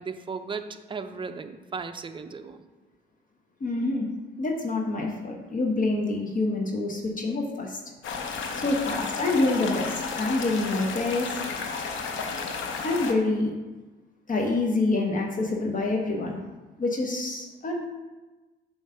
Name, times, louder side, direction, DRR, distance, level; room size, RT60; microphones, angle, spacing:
voice 1, 0.0-2.6, right 5 dB, 25° right, 8 dB, 0.5 m, -36 dB
voice 2, 3.6-4.1 4.4-7.8 8.5-11.4 11.7-12.1 12.6-13.6 14.3-16.4 16.8-17.8, left 2 dB, 40° left, 1 dB, 1.1 m, -27 dB
sound 1, 8.0-13.1, left 5 dB, 75° left, 0.8 m, -32 dB
7.3 x 3.2 x 5.5 m, 1.2 s
cardioid pair, 90°, 20 cm